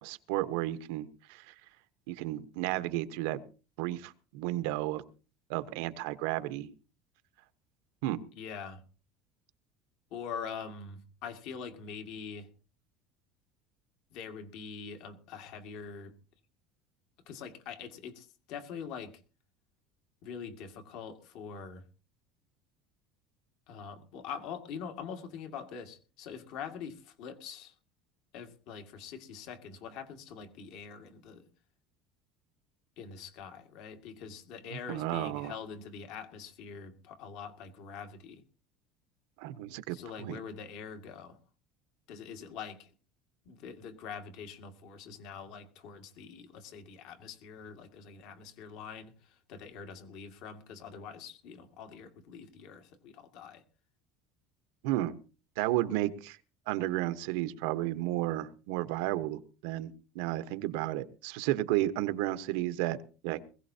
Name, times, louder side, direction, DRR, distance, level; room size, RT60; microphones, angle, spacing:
voice 1, 0.0-1.5 2.1-3.4 3.8-5.0 5.5-6.7 8.0-8.2 34.7-35.5 39.4-40.4 54.8-55.2 55.6-56.4 56.7-63.0 63.2-63.4, right 15 dB, 80° right, 12 dB, 1.0 m, -33 dB
voice 2, 8.4-8.8 10.1-12.5 14.1-16.1 17.3-19.1 20.2-21.8 23.7-27.7 28.3-31.5 33.0-38.4 39.9-41.4 42.1-42.9 43.5-53.6, left 6 dB, 55° left, 6 dB, 2.1 m, -44 dB
21.0 x 16.5 x 2.8 m, 0.35 s
cardioid pair, 175°, 0 cm